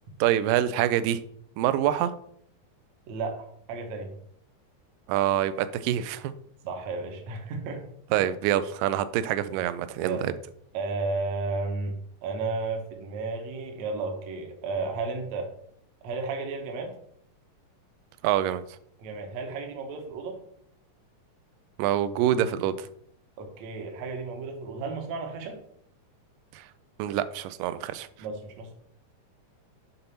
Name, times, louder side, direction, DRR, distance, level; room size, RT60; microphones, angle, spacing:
voice 1, 0.2-1.2 1.6-2.1 5.1-6.3 8.1-10.3 18.2-18.8 21.8-22.9 26.5-26.7 27.0-28.1, right 11 dB, 80° right, 13 dB, 2.1 m, -26 dB
voice 2, 3.1-4.1 6.6-7.9 8.2-8.3 10.0-10.3 10.7-15.5 16.0-16.9 19.0-20.4 23.4-25.6 28.2-28.7, right 3 dB, 65° right, 3 dB, 1.9 m, -33 dB
7.0 x 3.9 x 5.6 m, 0.69 s
omnidirectional pair, 4.0 m